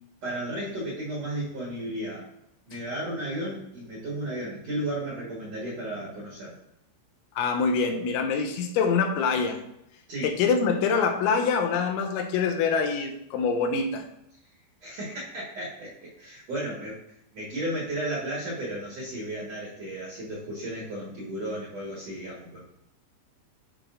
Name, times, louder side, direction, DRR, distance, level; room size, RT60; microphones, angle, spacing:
voice 1, 0.2-2.3 2.7-6.6 10.1-10.3 14.8-15.9 16.2-17.0 17.3-22.6, right 1 dB, 70° right, -5 dB, 1.5 m, -34 dB
voice 2, 7.4-9.6 10.2-14.1, left 5 dB, 85° left, 4 dB, 3.2 m, -25 dB
11.5 x 4.8 x 2.5 m, 0.81 s
omnidirectional pair, 5.3 m